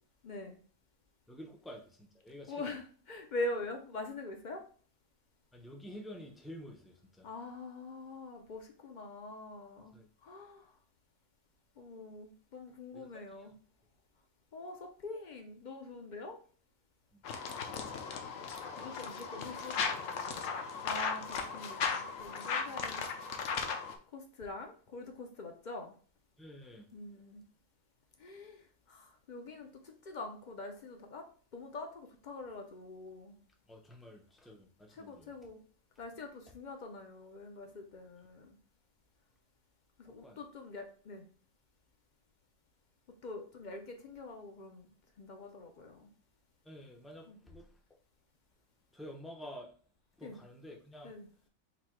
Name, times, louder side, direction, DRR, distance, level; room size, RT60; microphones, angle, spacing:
voice 1, 0.2-0.6 2.5-4.6 7.2-10.7 11.8-13.5 14.5-16.4 18.8-19.8 20.9-23.1 24.1-25.9 26.9-27.4 28.2-31.3 31.5-33.4 34.9-35.6 36.0-38.6 40.0-41.2 43.2-44.9 45.2-46.1 47.3-47.4 50.2-50.4 51.0-51.3, left 2 dB, 55° left, 0.5 m, -44 dB
voice 2, 1.3-2.8 5.5-7.3 9.9-10.1 12.9-13.1 13.4-13.5 17.1-17.2 17.5-18.0 18.6-18.9 22.6-22.8 26.4-26.9 33.7-35.3 40.1-40.4 46.6-47.8 48.9-49.7 50.2-51.1, equal, ahead, 0.4 m, -50 dB
sound 1, 17.2-24.0, left 5 dB, 70° left, 1.0 m, -37 dB
4.1 x 2.7 x 4.5 m
omnidirectional pair, 1.4 m